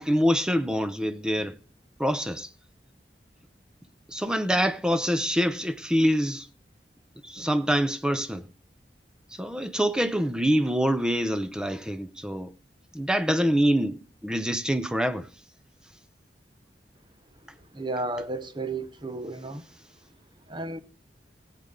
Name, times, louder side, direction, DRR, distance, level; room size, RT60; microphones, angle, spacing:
voice 1, 0.0-1.6 2.0-2.5 4.1-6.5 7.2-8.4 9.3-12.5 12.9-15.3, equal, 5° right, 0.7 m, -25 dB
voice 2, 17.7-19.6 20.5-20.8, right 2 dB, 25° right, 1.0 m, -33 dB
19.0 x 8.2 x 3.9 m
head